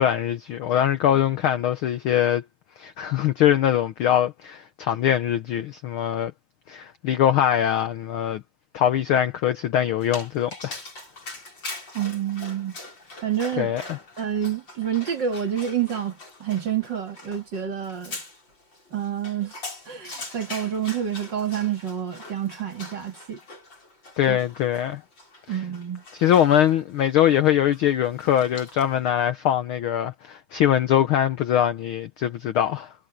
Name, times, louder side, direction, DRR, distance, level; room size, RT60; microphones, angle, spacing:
voice 1, 0.0-2.4 2.8-6.3 6.7-8.4 8.7-10.8 13.6-14.0 24.2-25.0 26.1-32.9, left 10 dB, 75° left, 1.2 m, -22 dB
Dog, 10.0-29.1, left 2 dB, 40° left, 7.8 m, -42 dB
voice 2, 11.9-12.8 13.2-13.7 14.2-18.2 18.9-19.6 19.9-23.4 24.3-24.4 25.5-26.0, right 9 dB, 40° right, 2.4 m, -28 dB
omnidirectional pair, 3.3 m